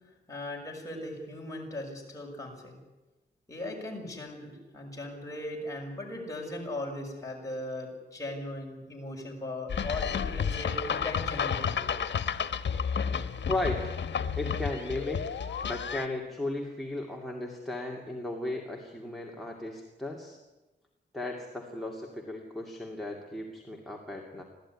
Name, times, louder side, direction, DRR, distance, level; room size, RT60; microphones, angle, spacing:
voice 1, 0.3-2.8 3.5-11.9, left 1 dB, 20° left, -1 dB, 6.5 m, -38 dB
sound 1, 9.7-16.1, left 7 dB, 90° left, 1.1 m, -31 dB
voice 2, 13.5-13.8 14.4-20.4 21.1-24.4, left 2 dB, ahead, 1 dB, 2.5 m, -35 dB
26.0 x 16.5 x 10.0 m, 1.1 s
wide cardioid pair, 180°, 18 cm